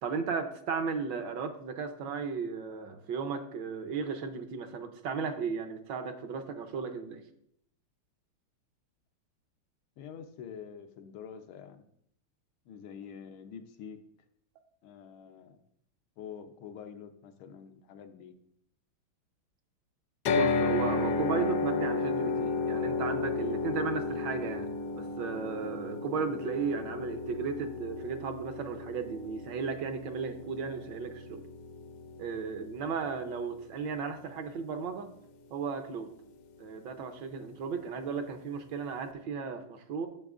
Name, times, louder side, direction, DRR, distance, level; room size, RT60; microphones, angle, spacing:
voice 1, 0.0-7.2 20.3-24.7 24.9-31.4 32.2-35.1 35.5-36.1 36.6-40.1, right 5 dB, 70° right, 6 dB, 1.3 m, -35 dB
voice 2, 10.0-11.9 12.7-14.0 14.8-15.6 16.2-18.4 25.5-25.7, left 7 dB, 85° left, 7 dB, 1.6 m, -46 dB
sound 1, 20.3-34.4, left 4 dB, 65° left, 1.1 m, -33 dB
10.0 x 6.8 x 2.4 m, 0.72 s
omnidirectional pair, 2.3 m